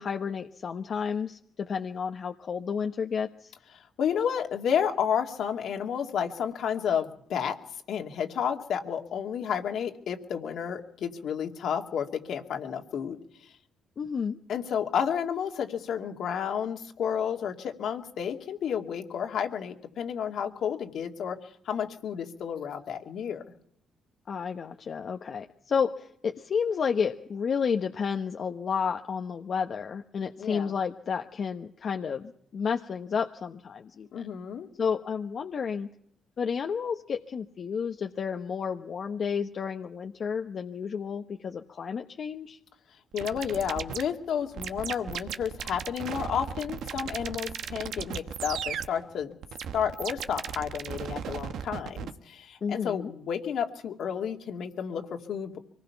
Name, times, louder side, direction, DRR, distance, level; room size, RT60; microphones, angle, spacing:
voice 1, 0.0-3.5 14.0-14.4 24.3-34.1 34.8-35.9 36.4-42.6 52.6-53.1, left 6 dB, 50° left, 4 dB, 1.1 m, -31 dB
voice 2, 3.8-7.6 7.9-13.2 13.4-13.5 14.5-23.4 30.4-30.7 34.1-34.7 43.1-49.3 49.7-55.6, left 8 dB, 70° left, 4 dB, 2.3 m, -31 dB
sound 1, 43.2-52.1, right 8 dB, 75° right, 1.2 m, -36 dB
24.5 x 19.5 x 5.9 m, 0.70 s
cardioid pair, 90°, 0 cm